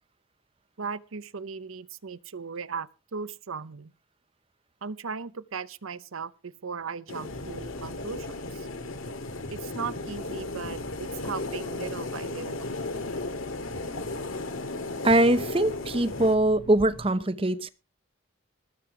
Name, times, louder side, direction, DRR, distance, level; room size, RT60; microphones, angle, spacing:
voice 1, 0.8-3.9 4.8-8.7 9.5-12.7, right 5 dB, 85° right, 0.7 m, -37 dB
sound 1, 7.1-16.4, left 2 dB, 85° left, 2.0 m, -35 dB
sound 2, 7.3-17.1, equal, 40° left, 1.5 m, -46 dB
voice 2, 15.0-17.7, right 1 dB, 25° right, 0.8 m, -22 dB
20.0 x 7.6 x 4.9 m
head